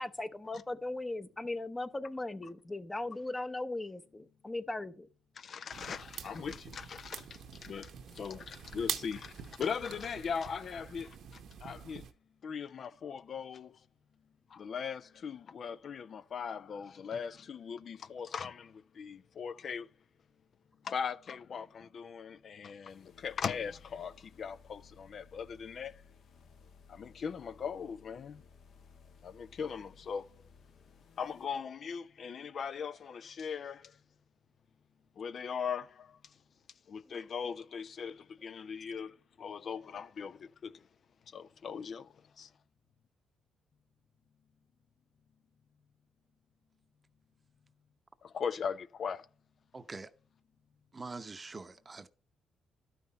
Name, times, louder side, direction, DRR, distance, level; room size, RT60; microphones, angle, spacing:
voice 1, 0.0-5.1 37.1-37.2, left 2 dB, 20° left, 0.7 m, -38 dB
voice 2, 5.4-11.2 11.6-12.0 12.4-13.8 14.5-19.9 20.8-26.0 26.9-28.4 29.2-30.3 31.2-34.0 35.2-36.2 36.9-40.8 41.3-42.1 42.4-42.5 48.2-49.3, left 6 dB, 55° left, 0.3 m, -39 dB
sound 1, 5.7-12.1, right 8 dB, 70° right, 0.9 m, -45 dB
sound 2, 22.9-31.5, left 5 dB, 70° left, 1.3 m, -59 dB
voice 3, 49.7-50.1 50.9-52.1, right 3 dB, 25° right, 0.7 m, -44 dB
12.0 x 5.8 x 4.0 m
cardioid pair, 90°, 0 cm